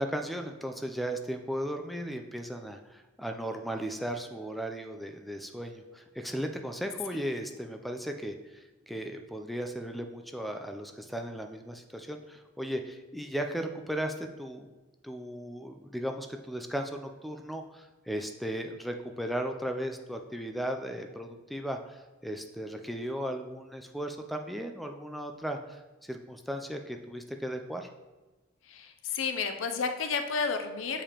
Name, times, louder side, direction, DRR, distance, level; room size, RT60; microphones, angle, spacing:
voice 1, 0.0-14.7 15.0-27.9, equal, ahead, 5 dB, 0.3 m, -36 dB
voice 2, 28.7-31.0, left 5 dB, 90° left, 6 dB, 0.5 m, -31 dB
6.9 x 4.7 x 2.9 m, 1.1 s
head